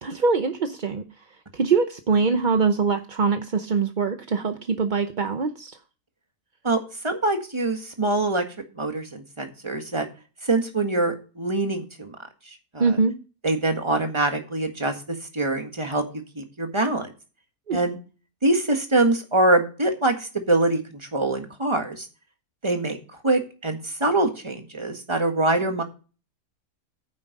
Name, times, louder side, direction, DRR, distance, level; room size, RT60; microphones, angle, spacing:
voice 1, 0.0-1.1 1.5-5.7 12.8-13.2 17.7-17.8, right 4 dB, 40° right, 8 dB, 0.7 m, -23 dB
voice 2, 6.6-8.4 8.7-10.0 10.4-12.2 12.5-13.0 13.4-16.0 16.3-17.1 17.7-18.0 18.4-22.1 22.6-23.0 23.2-25.8, right 2 dB, 20° right, 5 dB, 1.7 m, -24 dB
9.7 x 7.4 x 5.3 m, 0.34 s
omnidirectional pair, 1.7 m